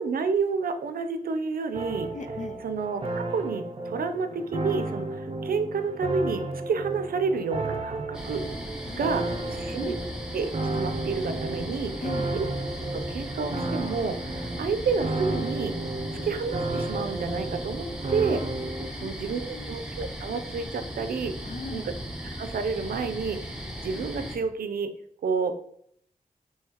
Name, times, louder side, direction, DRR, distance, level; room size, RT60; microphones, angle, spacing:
voice 1, 0.0-2.1 2.6-8.4 8.9-9.9 10.3-10.5 10.7-11.9 12.3-12.4 12.9-15.7 16.2-18.4 19.0-21.3 21.7-21.9 22.2-24.9 25.2-25.5, right 5 dB, 85° right, 9 dB, 0.5 m, -30 dB
sound 1, 1.7-18.9, right 2 dB, 40° right, 0.6 m, -33 dB
voice 2, 2.1-2.6 8.9-10.0 12.0-12.4 18.9-19.7 21.4-21.9, left 4 dB, 55° left, 9 dB, 0.5 m, -40 dB
sound 2, 8.1-24.4, equal, 5° right, 0.7 m, -37 dB
5.6 x 2.9 x 2.9 m, 0.68 s
wide cardioid pair, 95°, 15 cm